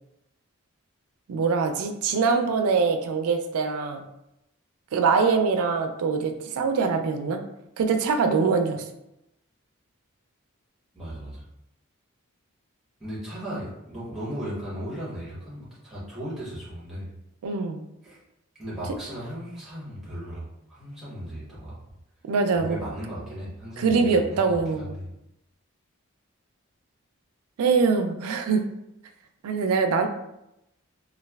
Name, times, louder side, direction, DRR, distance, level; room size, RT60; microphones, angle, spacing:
voice 1, 1.3-4.0 4.9-7.4 7.8-8.8 17.4-17.8 22.3-22.8 23.8-24.9 27.6-28.6 29.4-30.1, right 5 dB, 85° right, 6 dB, 0.4 m, -23 dB
voice 2, 10.9-11.4 13.0-17.1 18.0-18.2 18.6-21.8 22.5-25.0, equal, ahead, -8 dB, 1.0 m, -36 dB
3.1 x 2.3 x 2.2 m, 0.85 s
head